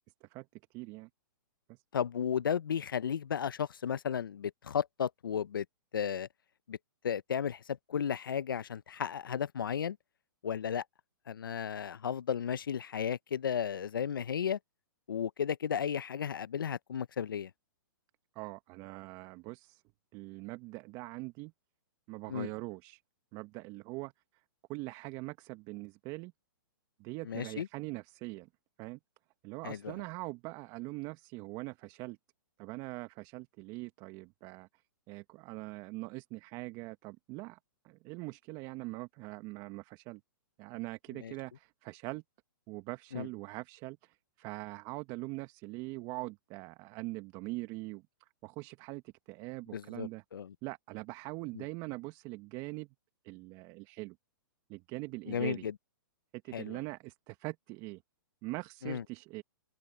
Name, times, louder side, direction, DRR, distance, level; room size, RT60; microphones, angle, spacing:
voice 1, 0.7-1.1 1.7-1.8 18.3-19.8 20.1-21.5 22.1-23.0 23.3-24.1 24.7-26.3 27.0-28.5 28.8-29.0 29.4-32.2 32.6-34.7 35.1-37.6 37.8-40.2 40.6-42.2 42.7-48.0 48.4-49.0 49.3-50.2 50.6-52.9 53.2-54.2 54.7-55.7 56.4-58.0 58.4-59.4, right 23 dB, 35° right, 1.6 m, -42 dB
voice 2, 1.9-5.6 5.9-6.3 6.7-6.8 7.0-10.0 10.4-10.8 11.3-14.6 15.1-17.5 22.3-22.5 27.2-27.7 29.6-29.9 41.2-41.3 43.1-43.3 49.7-50.5 51.5-51.6 55.3-55.7 56.5-56.8 58.8-59.0, left 8 dB, 80° left, 0.9 m, -34 dB
open air
hypercardioid pair, 125°, 11 cm